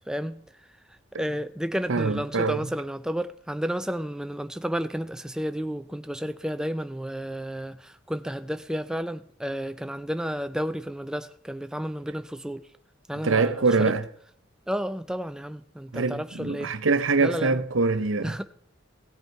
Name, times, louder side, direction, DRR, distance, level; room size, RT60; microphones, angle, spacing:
voice 1, 0.1-0.4 1.2-12.6 13.1-13.9 14.7-16.8 17.2-17.6 18.2-18.4, equal, 5° right, 0.4 m, -32 dB
voice 2, 1.9-2.6 13.2-14.0 15.9-18.3, right 3 dB, 80° right, 0.7 m, -24 dB
16.0 x 8.1 x 4.5 m
head